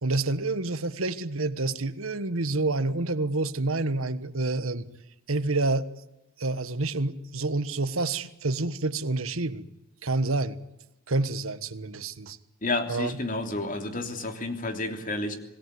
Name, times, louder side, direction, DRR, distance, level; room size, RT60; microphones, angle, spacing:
voice 1, 0.0-4.9 5.3-5.9 6.4-9.6 10.0-10.6 11.1-12.4 12.9-13.2, right 2 dB, 80° right, 12 dB, 1.4 m, -28 dB
voice 2, 12.6-15.4, left 2 dB, 40° left, 6 dB, 3.2 m, -30 dB
26.5 x 18.5 x 9.5 m, 0.91 s
head